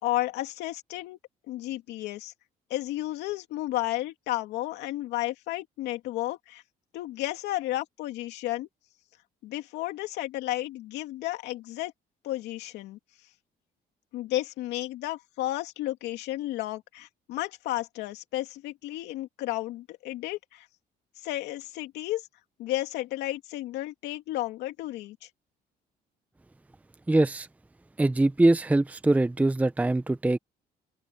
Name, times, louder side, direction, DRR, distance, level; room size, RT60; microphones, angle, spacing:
voice 1, 0.0-1.2 1.5-2.3 2.7-6.6 6.9-8.7 9.4-11.9 12.2-13.0 14.1-20.7 21.2-22.3 22.6-25.3, left 15 dB, 85° left, 2.8 m, -32 dB
voice 2, 27.1-27.5 28.0-30.4, right 2 dB, 10° right, 0.7 m, -23 dB
open air
cardioid pair, 110°, 17 cm